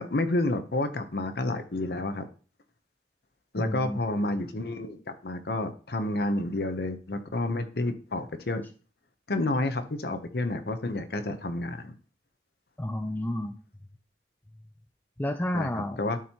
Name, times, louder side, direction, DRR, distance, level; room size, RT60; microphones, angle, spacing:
voice 1, 0.0-2.3 3.5-8.6 9.3-11.9 15.5-16.2, left 2 dB, 60° left, 8 dB, 0.8 m, -30 dB
voice 2, 3.6-4.0 12.8-13.6 15.2-16.0, left 1 dB, 10° left, 6 dB, 0.4 m, -30 dB
12.0 x 4.5 x 2.9 m, 0.39 s
head